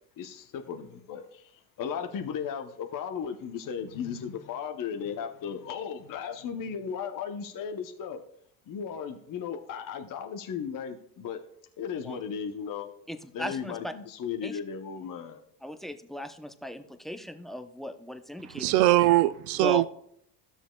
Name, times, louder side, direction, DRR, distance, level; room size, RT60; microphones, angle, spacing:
voice 1, 0.2-1.5 1.8-8.2 8.7-11.4 11.8-12.9 13.3-15.4, left 7 dB, 45° left, 0.9 m, -36 dB
voice 2, 13.1-13.9 14.4-14.6 15.6-18.8 19.6-19.8, left 1 dB, ahead, 0.6 m, -37 dB
voice 3, 18.5-19.9, right 16 dB, 80° right, 0.5 m, -21 dB
13.0 x 7.1 x 2.3 m
hypercardioid pair, 75°, 46 cm